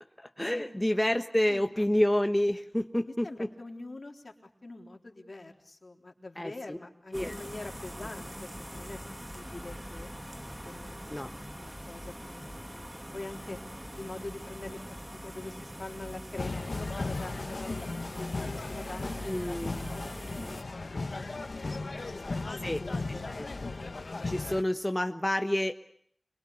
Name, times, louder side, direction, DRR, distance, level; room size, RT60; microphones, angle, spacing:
voice 1, 0.2-3.5 6.4-6.8 7.1-7.3 11.1-11.4 19.2-19.7 22.6-22.8 23.1-23.5 24.2-25.7, left 1 dB, 20° left, 6 dB, 1.4 m, -29 dB
voice 2, 3.1-4.3 4.6-9.0 9.3-10.1 10.6-11.0 11.6-13.6 14.0-23.2, left 2 dB, 70° left, 2 dB, 3.8 m, -45 dB
sound 1, 7.1-20.6, equal, 15° right, 2.4 m, -43 dB
sound 2, 16.4-24.6, left 3 dB, 90° left, 1.2 m, -36 dB
27.0 x 22.5 x 8.5 m, 0.64 s
wide cardioid pair, 45°, 0 cm